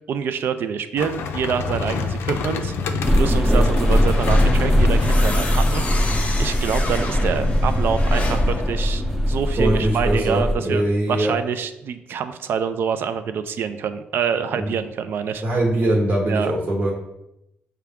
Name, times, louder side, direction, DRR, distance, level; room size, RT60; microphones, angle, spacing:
voice 1, 0.1-2.7 3.2-6.1 6.4-15.4 16.3-16.5, right 7 dB, 70° right, 10 dB, 0.3 m, -26 dB
sound 1, 1.0-6.6, left 4 dB, 85° left, 0.4 m, -28 dB
sound 2, 3.0-10.5, equal, 5° right, 0.6 m, -20 dB
sound 3, 3.7-9.9, left 2 dB, 35° left, 0.7 m, -27 dB
voice 2, 9.6-11.3 14.5-14.7 15.4-16.9, right 1 dB, 45° right, -3 dB, 0.9 m, -22 dB
5.7 x 2.3 x 3.5 m, 0.85 s
cardioid pair, 100°, 4 cm